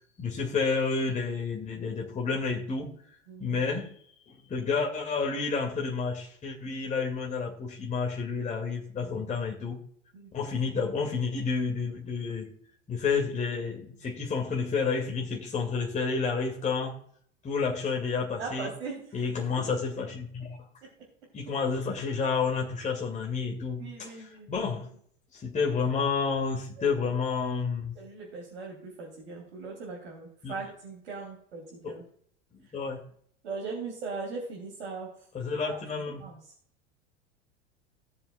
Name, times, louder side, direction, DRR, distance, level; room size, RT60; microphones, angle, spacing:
voice 1, 0.2-2.9 3.4-3.9 4.3-9.8 10.3-12.5 12.9-17.0 17.4-18.7 19.1-20.6 21.3-24.9 25.3-27.9 30.4-30.5 31.8-32.0 32.7-33.0 35.3-36.2, left 5 dB, 20° left, 2.4 m, -30 dB
voice 2, 3.3-3.6 9.0-9.2 10.1-10.3 18.4-19.6 20.8-20.9 23.8-24.7 26.8-26.9 27.9-32.0 33.4-35.1 35.6-35.8 36.2-36.4, right 4 dB, 70° right, 3.4 m, -40 dB
19.0 x 7.1 x 2.4 m
figure-of-eight pair, 80°, 36 cm